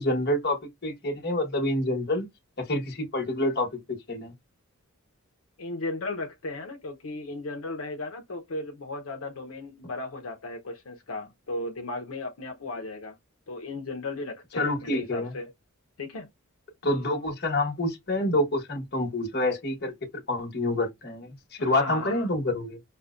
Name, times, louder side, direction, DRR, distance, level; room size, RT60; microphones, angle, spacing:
voice 1, 0.0-2.2 2.6-4.3 14.6-15.3 16.8-19.9 20.3-22.8, left 1 dB, 50° left, 1.2 m, -27 dB
voice 2, 5.6-13.2 13.5-15.5 16.0-16.3 21.6-22.3, left 2 dB, 80° left, 0.7 m, -36 dB
5.4 x 2.1 x 2.4 m
head